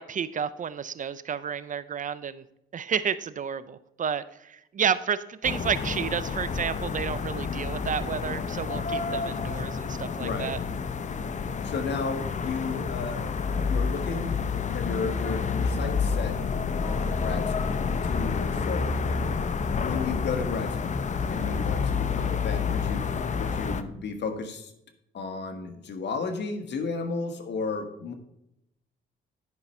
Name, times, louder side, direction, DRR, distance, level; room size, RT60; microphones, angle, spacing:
voice 1, 0.0-2.4 2.7-10.6, right 7 dB, 40° right, 15 dB, 0.5 m, -31 dB
sound 1, 5.4-23.8, left 5 dB, 35° left, 0.7 m, -29 dB
voice 2, 10.2-10.6 11.6-13.4 13.7-14.3 14.7-16.4 16.8-18.9 19.8-23.1 23.4-24.7 25.1-28.1, left 4 dB, 60° left, 7 dB, 1.5 m, -33 dB
10.5 x 5.5 x 4.4 m, 0.80 s
cardioid pair, 90°, 20 cm